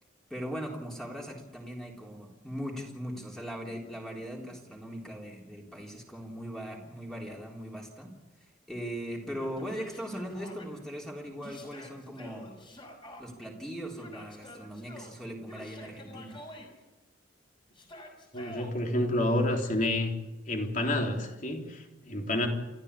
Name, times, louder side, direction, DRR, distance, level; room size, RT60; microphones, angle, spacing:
voice 1, 0.3-8.1 8.4-12.5 13.2-16.4, equal, ahead, -1 dB, 3.7 m, -39 dB
Yell, 9.4-10.7 11.4-13.2 14.0-15.1 15.5-16.7 17.7-18.7, left 1 dB, 25° left, 5.5 m, -48 dB
voice 2, 18.3-20.1 20.5-22.5, left 1 dB, 45° left, 2 dB, 3.6 m, -29 dB
28.5 x 13.5 x 8.4 m, 1.1 s
head